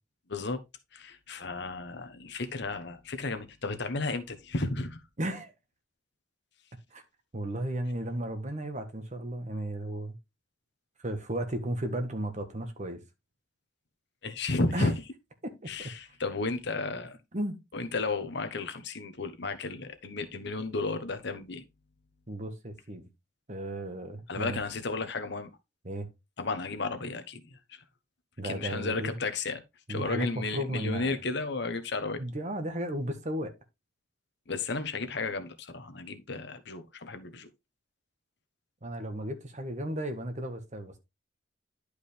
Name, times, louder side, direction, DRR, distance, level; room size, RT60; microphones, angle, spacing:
voice 1, 0.3-0.6 0.9-5.0 14.2-14.9 15.7-17.2 17.7-21.6 24.3-25.5 26.4-27.8 28.4-29.6 29.9-32.2 34.5-37.5, left 3 dB, 65° left, 1.1 m, -33 dB
voice 2, 5.2-5.5 6.9-7.0 7.3-10.2 11.0-13.0 14.7-14.9 15.4-15.9 17.3-17.6 22.3-23.1 23.5-24.6 25.8-26.1 28.4-29.2 29.9-31.1 32.2-33.5 38.8-41.0, right 1 dB, 40° right, 1.4 m, -34 dB
11.0 x 5.0 x 3.3 m
head